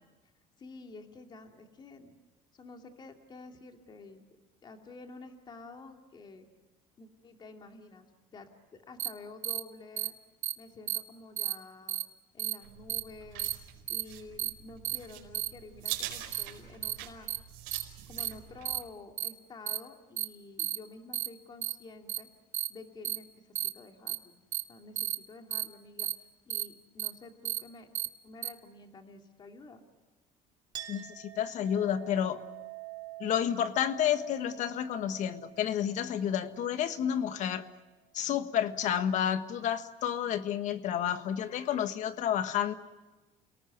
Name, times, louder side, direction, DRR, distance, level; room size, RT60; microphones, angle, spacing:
voice 1, 0.6-2.2 2.5-4.2 4.6-6.5 7.0-8.1 8.3-10.1 10.6-12.0 12.3-13.5 13.9-17.3 18.1-22.3 22.7-24.4 24.7-27.9 28.2-29.8, left 3 dB, 30° left, 4 dB, 2.6 m, -50 dB
sound 1, 9.0-9.1 9.4-9.6 10.0-10.1 10.4-10.5 10.9-11.0 11.4-11.5 11.9-12.0 12.4-12.5 12.9-13.0 13.4-13.5 13.9-14.0 14.4-14.5 14.8-15.0 15.3-15.5 15.8-15.9 16.3-16.4 16.8-16.9 17.3-17.4 17.7-17.8 18.2-18.3 18.6-18.8 19.2-19.3 19.7-19.8 20.2-20.3 20.6-20.8 21.1-21.3 21.6-21.7 22.1-22.2 22.5-22.7 23.0-23.2 23.5-23.7 24.1-24.2 24.5-24.6 25.0-25.1 25.5-25.6 26.0-26.1 26.5-26.6 27.0-27.1 27.4-27.6 27.9-28.1 28.4-28.5, right 12 dB, 50° right, 1.3 m, -32 dB
sound 2, 12.6-18.8, right 12 dB, 90° right, 4.7 m, -44 dB
Chink clink, 30.7-37.8, right 15 dB, 30° right, 3.3 m, -47 dB
voice 2, 30.9-32.4 33.2-37.7 38.1-42.7, left 9 dB, 55° left, 10 dB, 1.6 m, -30 dB
29.0 x 19.0 x 9.4 m, 1.1 s
cardioid pair, 130°, 15 cm